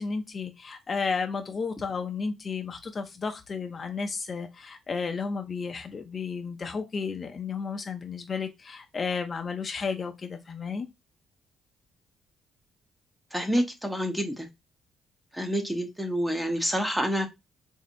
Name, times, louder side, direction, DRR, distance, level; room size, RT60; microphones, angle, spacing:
voice 1, 0.0-10.9, left 5 dB, 40° left, 0.5 m, -33 dB
voice 2, 13.3-14.5 15.3-17.3, equal, 5° right, 0.9 m, -28 dB
4.1 x 2.7 x 2.6 m
cardioid pair, 90°, 0 cm